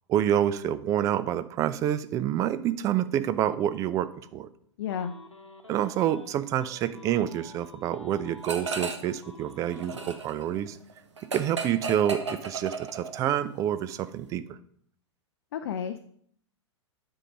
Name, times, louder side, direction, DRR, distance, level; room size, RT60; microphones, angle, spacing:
voice 1, 0.1-4.5 5.7-10.8 11.3-14.6, right 11 dB, 20° right, 14 dB, 0.4 m, -28 dB
voice 2, 4.8-5.1 15.5-16.0, left 8 dB, 50° left, 8 dB, 0.5 m, -31 dB
sound 1, 4.9-6.3 6.6-10.2, left 1 dB, 90° left, 1.0 m, -48 dB
sound 2, 8.4-9.2 9.5-13.3, right 4 dB, 75° right, 0.9 m, -35 dB
9.7 x 3.9 x 5.0 m, 0.63 s
figure-of-eight pair, 100°, 15 cm